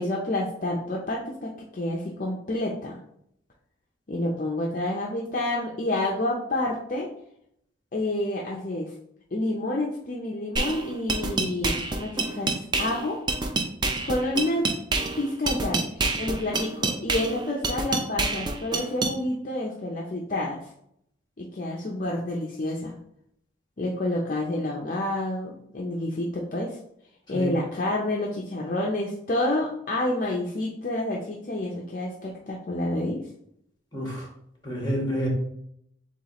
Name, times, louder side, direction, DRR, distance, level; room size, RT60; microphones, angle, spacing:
voice 1, 0.0-3.0 4.1-7.1 7.9-8.9 9.3-13.2 14.0-14.7 15.2-15.8 16.2-20.7 21.4-22.9 23.8-26.8 27.3-33.2, left 1 dB, 45° left, -2 dB, 0.6 m, -29 dB
sound 1, 10.6-19.2, right 3 dB, 25° right, 0.4 m, -28 dB
voice 2, 33.9-34.3 34.6-35.3, equal, 20° left, -2 dB, 1.4 m, -28 dB
7.2 x 2.4 x 2.9 m, 0.73 s
head